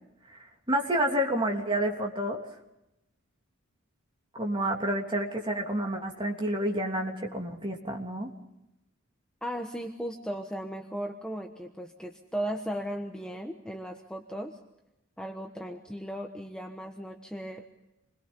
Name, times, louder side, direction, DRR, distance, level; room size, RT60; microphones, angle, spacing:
voice 1, 0.7-2.4 4.3-8.3, right 1 dB, 25° right, 1 dB, 3.1 m, -29 dB
voice 2, 9.4-14.6 15.2-17.6, equal, 5° left, 3 dB, 1.2 m, -36 dB
28.0 x 21.5 x 5.4 m, 0.90 s
head